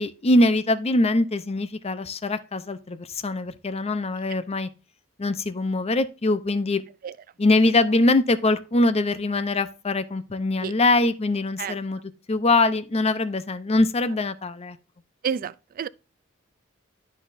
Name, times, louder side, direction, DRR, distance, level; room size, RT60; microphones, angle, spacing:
voice 1, 0.0-4.7 5.2-6.8 7.4-12.0 12.3-14.8, left 2 dB, 30° left, 0.6 m, -23 dB
voice 2, 15.2-15.9, right 7 dB, 45° right, 0.3 m, -29 dB
12.0 x 4.2 x 2.6 m
head